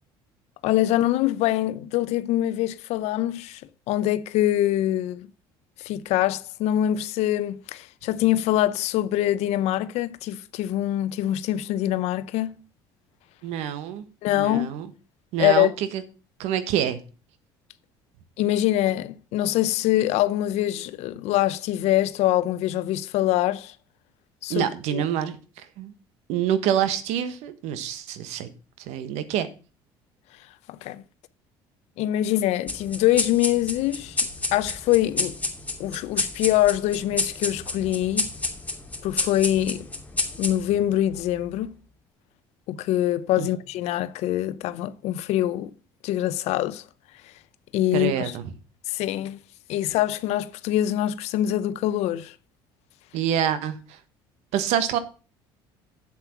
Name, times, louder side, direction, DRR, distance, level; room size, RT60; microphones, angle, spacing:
voice 1, 0.6-3.6 3.9-5.3 5.8-12.6 14.2-14.7 15.4-15.7 18.4-23.7 24.4-25.0 30.7-31.0 32.0-34.2 34.5-35.4 35.8-38.3 39.0-39.9 40.4-41.7 42.7-45.7 46.0-46.8 47.7-48.3 48.9-49.4 49.7-52.3, left 13 dB, 70° left, 0.7 m, -24 dB
voice 2, 13.4-14.0 14.3-14.9 15.3-16.0 16.4-17.0 24.5-25.9 26.3-28.5 28.8-29.5 43.4-43.5 47.9-48.4 53.1-54.0 54.5-55.0, right 10 dB, 75° right, 1.3 m, -26 dB
sound 1, 32.7-41.6, left 3 dB, 15° left, 2.7 m, -30 dB
8.0 x 7.5 x 5.8 m
supercardioid pair, 75°, 12 cm